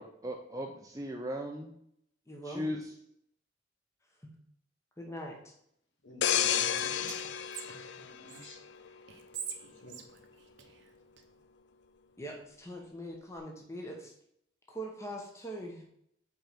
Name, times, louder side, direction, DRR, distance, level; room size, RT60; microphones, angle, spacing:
voice 1, 0.0-1.7 2.4-2.9, equal, 20° right, 1 dB, 0.6 m, -37 dB
voice 2, 2.3-2.7 5.0-5.5 12.2-14.1 14.7-15.8, right 1 dB, 15° left, 0 dB, 1.1 m, -42 dB
voice 3, 6.0-7.2 7.6-8.6 9.6-10.0, left 1 dB, 85° left, 2 dB, 1.5 m, -49 dB
sound 1, 6.2-8.9 9.3-9.6, left 9 dB, 65° left, 0.4 m, -31 dB
Whispering, 6.5-8.5 9.1-11.2, right 7 dB, 70° right, 0.8 m, -45 dB
5.7 x 4.5 x 5.1 m, 0.71 s
head